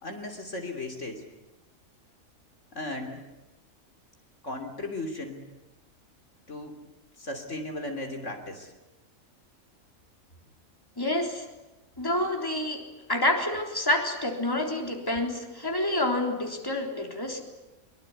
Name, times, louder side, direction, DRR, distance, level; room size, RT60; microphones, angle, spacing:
voice 1, 0.0-1.2 2.7-3.2 4.4-5.4 6.5-6.8 7.2-8.7, left 2 dB, 60° left, 4 dB, 3.5 m, -36 dB
voice 2, 11.0-11.5 12.0-12.8 13.1-17.4, left 1 dB, 15° left, 2 dB, 3.7 m, -28 dB
24.0 x 23.5 x 9.8 m, 1.0 s
omnidirectional pair, 1.4 m